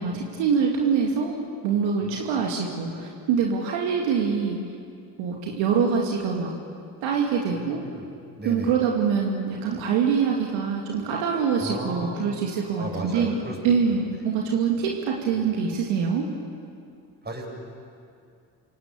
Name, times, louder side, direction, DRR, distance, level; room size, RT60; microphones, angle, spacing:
voice 1, 0.0-4.6 5.2-6.5 7.0-7.8 8.4-13.4 13.6-16.2, right 6 dB, 70° right, 0 dB, 2.6 m, -24 dB
voice 2, 7.5-8.0 8.4-8.7 11.6-12.2 12.8-13.6 13.9-14.0 15.3-15.4 17.2-17.5, right 1 dB, 20° right, 1 dB, 7.1 m, -35 dB
28.0 x 18.0 x 8.7 m, 2.4 s
hypercardioid pair, 55°, 48 cm